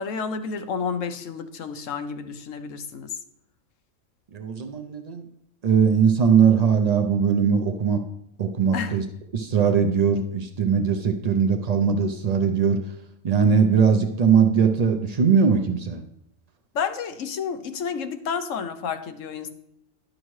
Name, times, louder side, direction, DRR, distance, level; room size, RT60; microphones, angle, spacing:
voice 1, 0.0-3.1 8.7-9.0 16.7-19.5, left 6 dB, 75° left, 9 dB, 1.1 m, -30 dB
voice 2, 4.3-5.2 5.6-8.0 8.4-9.0 9.3-12.9 13.2-16.0, right 6 dB, 85° right, 6 dB, 0.3 m, -20 dB
11.0 x 6.3 x 3.1 m, 0.81 s
omnidirectional pair, 1.4 m